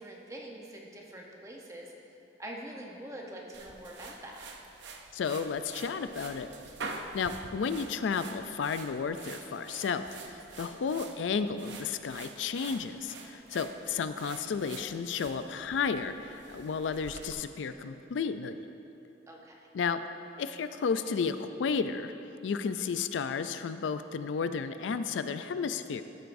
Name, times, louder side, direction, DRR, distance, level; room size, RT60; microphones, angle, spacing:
voice 1, 0.0-1.9 2.4-4.5 19.3-19.7, right 1 dB, 15° right, -1 dB, 0.9 m, -44 dB
sound 1, 3.5-17.3, right 4 dB, 75° right, 0.6 m, -47 dB
voice 2, 5.1-6.5 7.1-18.6 19.7-20.0 20.4-22.1 22.4-26.0, left 5 dB, 85° left, 10 dB, 0.4 m, -32 dB
13.5 x 7.8 x 2.6 m, 2.8 s
head